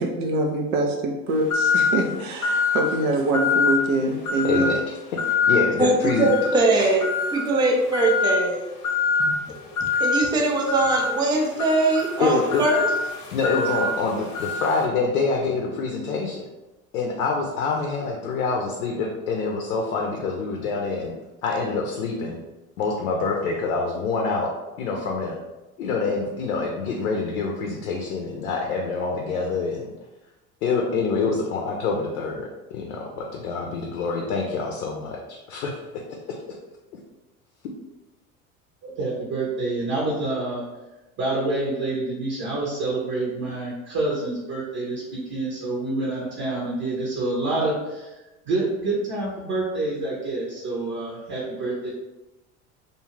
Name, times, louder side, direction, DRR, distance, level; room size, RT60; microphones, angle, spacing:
voice 1, 0.0-4.8, right 2 dB, 70° right, 2 dB, 0.7 m, -24 dB
sound 1, 1.5-2.0 2.4-2.9 3.3-3.8 4.3-4.7 5.2-5.6 6.1-6.5 7.0-7.5 7.9-8.4 8.8-9.3 9.8-10.2 10.7-14.8, left 5 dB, 45° left, 0.8 m, -24 dB
voice 2, 4.4-4.8 5.1-6.3 6.8-7.0 9.5-9.8 12.2-12.6 13.3-16.4 16.9-21.1 21.4-22.4 22.8-24.5 24.8-25.4 25.8-29.9 30.6-36.0 36.3-36.4, left 4 dB, 75° left, 0 dB, 0.6 m, -26 dB
voice 3, 5.8-8.7 9.2-9.3 10.0-12.9, right 2 dB, 10° right, 0 dB, 0.4 m, -21 dB
voice 4, 38.8-40.6 41.2-48.2 48.5-51.9, right 2 dB, 45° right, -5 dB, 0.9 m, -27 dB
2.5 x 2.3 x 3.1 m, 1.1 s
hypercardioid pair, 75°, 43 cm